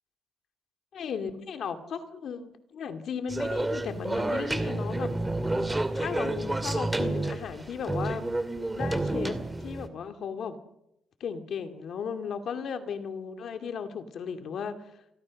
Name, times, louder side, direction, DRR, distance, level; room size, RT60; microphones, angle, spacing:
voice 1, 0.9-5.1 5.9-8.3 8.7-10.5 11.2-14.8, left 6 dB, 60° left, 7 dB, 2.4 m, -35 dB
sound 1, 3.3-9.9, right 2 dB, 10° right, 2.4 m, -30 dB
29.5 x 24.0 x 6.5 m, 0.85 s
cardioid pair, 140°, 0 cm